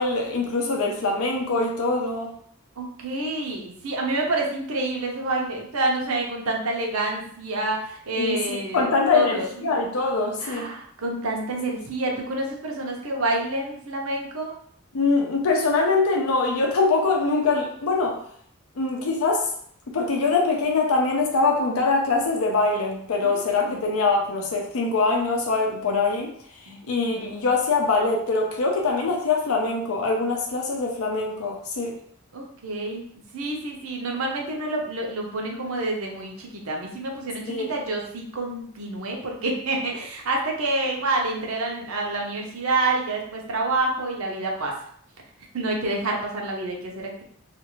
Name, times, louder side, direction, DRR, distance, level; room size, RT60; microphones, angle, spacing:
voice 1, 0.0-2.3 8.2-10.7 14.9-18.2 18.8-19.5 19.9-26.3 26.9-31.9 37.5-37.7, left 3 dB, 85° left, 1 dB, 0.5 m, -23 dB
voice 2, 2.8-9.7 10.4-14.6 23.2-23.8 26.7-27.0 32.3-33.0 33.3-44.7 45.5-47.2, right 2 dB, 85° right, 0 dB, 0.7 m, -28 dB
2.5 x 2.4 x 3.0 m, 0.63 s
head